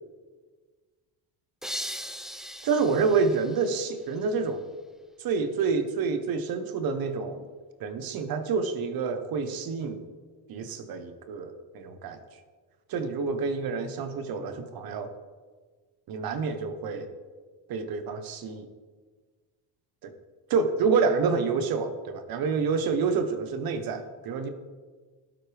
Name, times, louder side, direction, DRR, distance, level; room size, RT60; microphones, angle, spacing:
sound 1, 1.6-4.4, equal, ahead, 0.3 m, -39 dB
voice 1, 2.6-4.6 5.2-7.4 7.8-10.0 10.5-12.2 12.9-15.1 16.1-17.1 17.7-18.7 20.0-20.1 20.5-24.5, right 5 dB, 55° right, 8 dB, 1.3 m, -28 dB
12.5 x 11.5 x 3.5 m, 1.5 s
cardioid pair, 130°, 42 cm